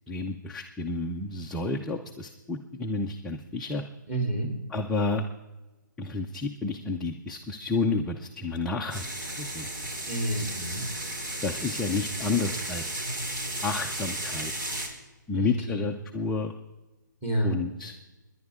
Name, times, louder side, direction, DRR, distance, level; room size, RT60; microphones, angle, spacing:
voice 1, 0.1-3.8 4.7-5.3 6.0-9.1 9.4-9.7 11.4-12.8 13.6-14.5 15.3-16.5 17.4-17.9, left 3 dB, 5° left, 0 dB, 0.4 m, -30 dB
voice 2, 4.1-4.5 10.1-10.9 15.3-15.8 17.2-17.5, right 1 dB, 15° right, 0 dB, 3.4 m, -29 dB
sound 1, 8.9-14.9, right 1 dB, 75° right, 4.5 m, -34 dB
27.0 x 10.5 x 3.6 m, 1.1 s
hypercardioid pair, 160°, 11 cm